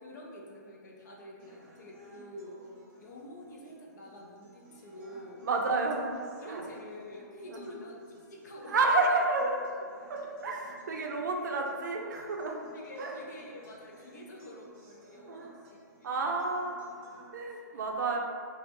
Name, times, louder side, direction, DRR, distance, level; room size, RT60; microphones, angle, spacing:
voice 1, 0.0-2.6 3.0-5.4 5.8-5.9 6.4-9.2 10.5-10.6 12.7-16.5 17.0-17.2 17.5-18.2, left 1 dB, 65° left, -2 dB, 0.5 m, -47 dB
sound 1, 1.4-17.4, right 3 dB, 35° right, 0.7 m, -57 dB
voice 2, 5.4-6.1 6.4-6.7 7.5-7.6 8.7-9.6 10.1-10.6 10.9-12.6 13.0-13.2 15.3-15.6 16.0-16.9 17.3-18.2, right 3 dB, 75° right, 1 dB, 0.4 m, -30 dB
2.4 x 2.1 x 2.8 m, 2.1 s
hypercardioid pair, 150°, 10 cm